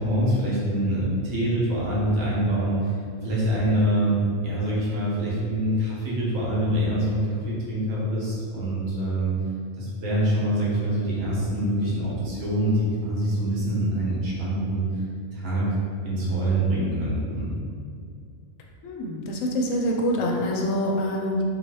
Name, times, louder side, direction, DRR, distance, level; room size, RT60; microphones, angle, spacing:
voice 1, 0.0-2.8 3.2-9.3 9.8-14.8 15.3-15.7 16.0-17.5, right 1 dB, 90° right, -7 dB, 1.5 m, -25 dB
voice 2, 18.8-21.4, equal, 85° left, 0 dB, 1.0 m, -25 dB
4.1 x 3.2 x 3.0 m, 2.3 s
omnidirectional pair, 1.3 m